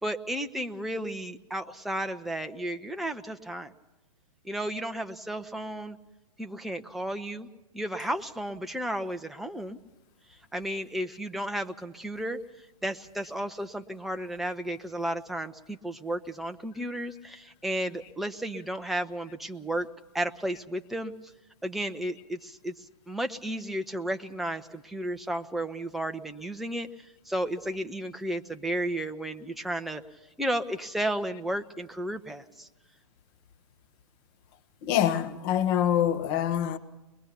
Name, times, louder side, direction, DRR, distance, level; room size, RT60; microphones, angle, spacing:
voice 1, 0.0-3.7 4.4-6.0 6.4-7.5 7.7-9.8 10.5-12.4 12.8-19.9 20.1-21.1 21.6-30.0 30.4-32.7, right 1 dB, ahead, 0.6 m, -33 dB
voice 2, 34.8-36.8, left 10 dB, 35° left, 1.0 m, -25 dB
22.0 x 21.5 x 5.8 m
figure-of-eight pair, 110°, 20 cm